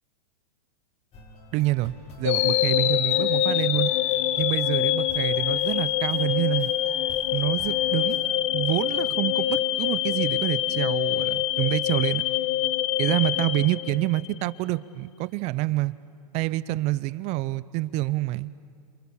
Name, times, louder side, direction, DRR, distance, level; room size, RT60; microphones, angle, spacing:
sound 1, 1.1-8.4, left 2 dB, 30° left, 3.9 m, -48 dB
voice 1, 1.5-3.9 4.4-6.7 7.3-8.2 8.5-12.2 13.0-15.9 16.3-18.5, right 18 dB, 30° right, 18 dB, 0.6 m, -27 dB
sound 2, 2.2-14.4, left 13 dB, 50° left, 1.0 m, -25 dB
28.0 x 27.0 x 7.1 m, 2.3 s
hypercardioid pair, 130°, 21 cm